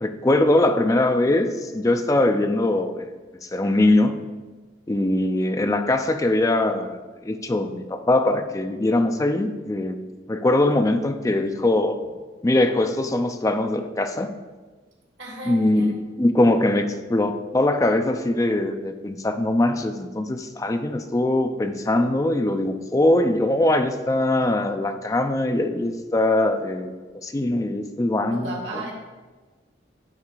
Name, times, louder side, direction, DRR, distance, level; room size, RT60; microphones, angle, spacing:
voice 1, 0.0-3.1 3.4-4.2 4.9-7.0 7.2-10.0 10.3-12.0 12.4-14.3 15.5-28.8, left 1 dB, 20° left, 7 dB, 0.4 m, -22 dB
voice 2, 15.2-15.9 28.3-28.9, right 2 dB, 85° right, -1 dB, 1.8 m, -34 dB
9.6 x 3.2 x 4.5 m, 1.3 s
head